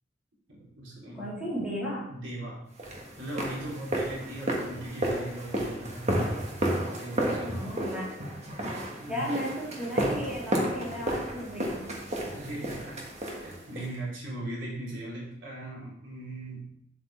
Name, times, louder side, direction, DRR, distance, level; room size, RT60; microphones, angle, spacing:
voice 1, 0.5-1.3 2.1-2.6 3.2-6.2 7.0-7.7 9.0-9.3 12.3-16.7, right 1 dB, 85° right, -5 dB, 3.7 m, -39 dB
voice 2, 1.1-2.1 7.5-8.1 9.1-11.9, equal, 5° right, -8 dB, 3.6 m, -34 dB
sound 1, 2.8-13.9, right 1 dB, 35° right, 1.6 m, -32 dB
8.9 x 7.9 x 3.4 m, 0.76 s
head